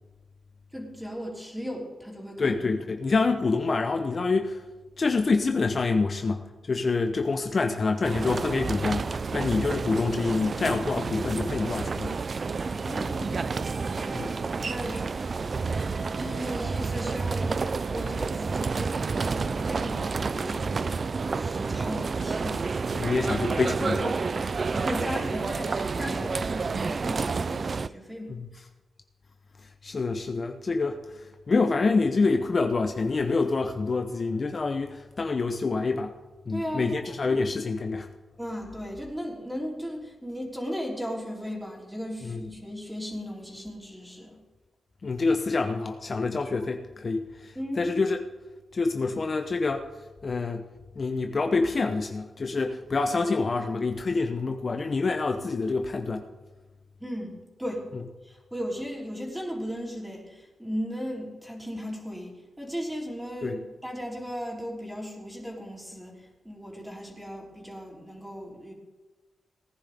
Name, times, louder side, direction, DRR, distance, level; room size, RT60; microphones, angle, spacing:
voice 1, 0.7-2.6 12.7-15.1 16.2-21.0 21.3-22.7 24.4-28.4 36.5-37.1 38.4-44.4 47.5-47.9 57.0-57.9 58.2-68.7, equal, 5° right, -1 dB, 3.5 m, -36 dB
voice 2, 2.4-4.6 5.0-9.1 9.3-12.2 14.1-14.3 22.9-24.6 29.8-31.0 31.5-36.1 36.5-38.1 42.2-42.4 45.0-48.3 48.7-49.8 50.2-50.6 51.0-56.2 63.4-63.6, left 3 dB, 45° left, 5 dB, 0.9 m, -27 dB
sound 1, 8.0-27.9, right 4 dB, 50° right, 0.4 m, -30 dB
18.5 x 10.5 x 3.6 m, 1.2 s
cardioid pair, 85°, 0 cm